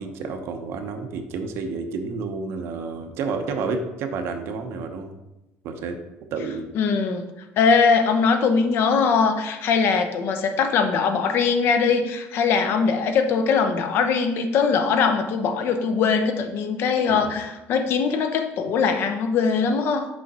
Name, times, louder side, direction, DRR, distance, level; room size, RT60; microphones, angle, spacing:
voice 1, 0.0-5.1 5.6-6.0 6.3-6.7 17.1-17.3, right 4 dB, 65° right, 6 dB, 0.8 m, -30 dB
voice 2, 6.7-7.2 7.6-20.1, left 5 dB, 55° left, 7 dB, 0.7 m, -21 dB
6.4 x 4.9 x 4.2 m, 0.97 s
cardioid pair, 145°, 5 cm